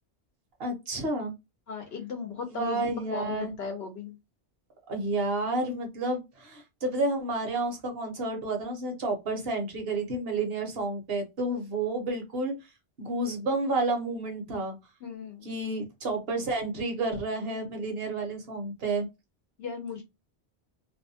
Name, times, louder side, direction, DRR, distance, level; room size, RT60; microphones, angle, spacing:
voice 1, 0.6-1.3 2.5-3.5 4.9-12.6 13.0-14.7 15.4-19.1, right 2 dB, 65° right, 3 dB, 1.1 m, -30 dB
voice 2, 1.7-4.2 15.0-15.5 19.6-20.0, left 6 dB, 70° left, 4 dB, 0.8 m, -37 dB
2.7 x 2.1 x 2.7 m, 0.22 s
omnidirectional pair, 1.1 m